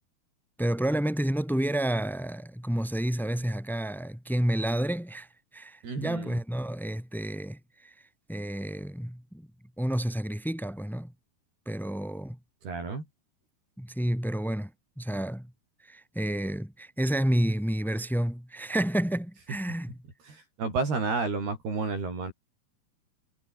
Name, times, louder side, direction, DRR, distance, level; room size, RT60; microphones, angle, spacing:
voice 1, 0.6-7.9 8.3-9.5 9.8-11.1 11.6-12.4 13.8-14.7 15.0-15.5 15.8-20.0, right 1 dB, ahead, 6.8 m, -30 dB
voice 2, 5.8-6.4 12.6-13.0 20.3-22.3, right 4 dB, 65° right, 10.0 m, -31 dB
omnidirectional pair, 5.0 m